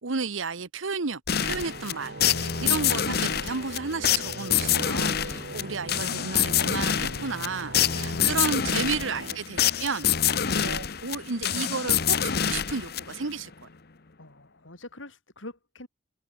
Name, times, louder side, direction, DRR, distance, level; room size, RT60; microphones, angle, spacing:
voice 1, 0.0-13.7, right 4 dB, 90° right, 1.1 m, -33 dB
sound 1, 1.3-13.4, left 9 dB, 55° left, 1.1 m, -26 dB
sound 2, 1.5-9.4, right 2 dB, 60° right, 2.2 m, -41 dB
voice 2, 8.1-8.7 9.0-9.2 10.5-10.8 14.2-15.9, left 1 dB, 80° left, 6.0 m, -43 dB
head